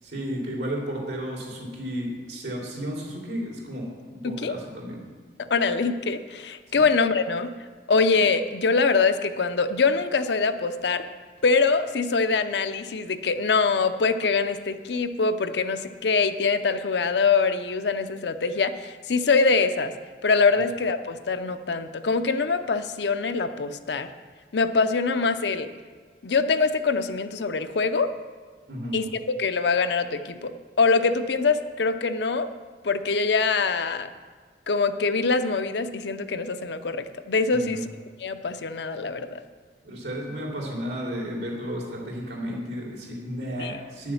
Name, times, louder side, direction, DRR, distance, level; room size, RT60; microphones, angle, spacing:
voice 1, 0.0-5.0 6.7-6.8 28.7-29.0 37.5-37.8 39.8-44.1, equal, 80° right, -2 dB, 3.2 m, -33 dB
voice 2, 4.2-4.6 5.5-7.5 7.9-11.0 11.4-19.9 20.2-24.1 24.5-25.7 26.2-28.1 28.9-30.5 30.8-32.5 32.8-34.1 34.7-37.8 38.2-39.4 43.6-43.8, left 4 dB, 80° left, 10 dB, 0.6 m, -24 dB
9.8 x 7.3 x 7.1 m, 1.5 s
head